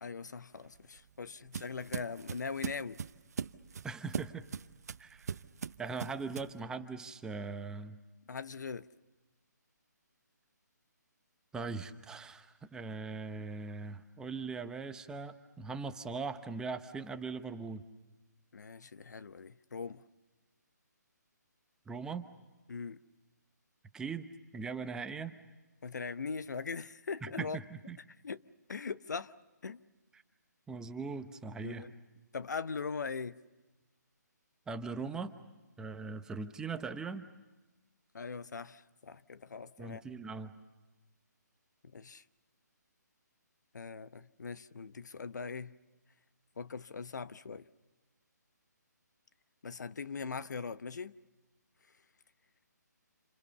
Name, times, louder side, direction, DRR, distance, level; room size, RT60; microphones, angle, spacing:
voice 1, 0.0-3.0 8.3-8.9 18.5-20.0 22.7-23.0 25.8-27.6 28.2-28.4 28.7-29.3 29.6-29.8 31.6-31.9 32.3-33.4 38.1-40.0 41.8-42.2 43.7-45.8 46.6-47.7 49.6-51.1, left 5 dB, 70° left, 0.9 m, -41 dB
sound 1, 0.6-6.6, right 6 dB, 60° right, 0.8 m, -41 dB
voice 2, 3.8-4.5 5.0-5.3 5.8-8.0 11.5-17.8 21.9-22.3 23.9-24.3 24.5-25.3 27.2-28.0 30.7-31.9 34.7-35.3 35.8-37.2 39.8-40.5, right 4 dB, 5° right, 0.9 m, -40 dB
28.5 x 26.5 x 7.0 m
figure-of-eight pair, 145°, 10 cm